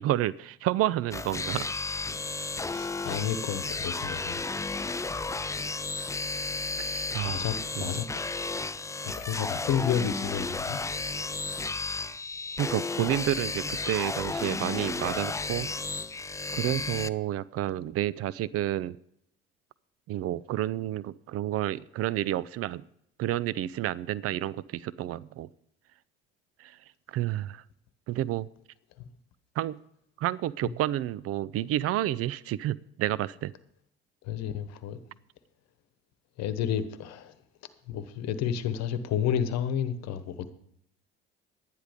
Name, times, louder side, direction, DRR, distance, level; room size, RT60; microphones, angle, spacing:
voice 1, 0.0-2.0 6.8-7.5 7.8-8.0 12.6-15.7 16.5-19.0 20.1-22.8 23.2-25.5 26.6-26.8 27.1-27.6 28.1-28.5 29.6-29.8 30.2-33.5, right 13 dB, 50° right, 0.5 m, -30 dB
sound 1, 1.1-17.1, left 3 dB, 10° left, 0.5 m, -33 dB
voice 2, 2.6-4.4 7.2-8.4 9.0-10.8 30.6-30.7 34.2-35.0 36.4-37.3 37.9-40.5, left 9 dB, 60° left, 1.2 m, -31 dB
11.5 x 10.0 x 5.2 m
hypercardioid pair, 65°, 30 cm